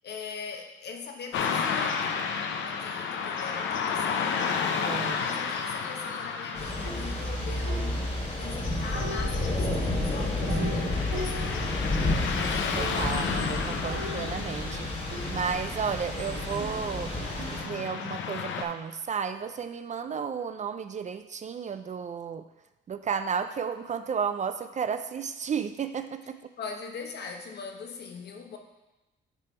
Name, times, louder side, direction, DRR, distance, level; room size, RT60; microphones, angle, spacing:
voice 1, 0.0-2.3 2.6-4.8 5.1-12.0 12.4-12.7 26.2-28.6, left 5 dB, 55° left, 4 dB, 1.0 m, -41 dB
Car passing by / Traffic noise roadway noise, 1.3-18.6, left 6 dB, 75° left, 0.7 m, -33 dB
voice 2, 4.8-5.2 12.8-14.9 15.3-17.1 17.5-22.4 22.9-26.4, right 6 dB, 35° right, 10 dB, 0.4 m, -33 dB
Thunder / Rain, 6.5-17.6, left 1 dB, 35° left, 1.9 m, -31 dB
sound 1, 6.8-8.6 8.9-12.2 12.5-12.6 12.8-13.4 13.9-15.9 16.3-18.0, right 1 dB, 85° right, 1.1 m, -42 dB
9.5 x 3.4 x 4.4 m, 1.0 s
cardioid pair, 90°, 20 cm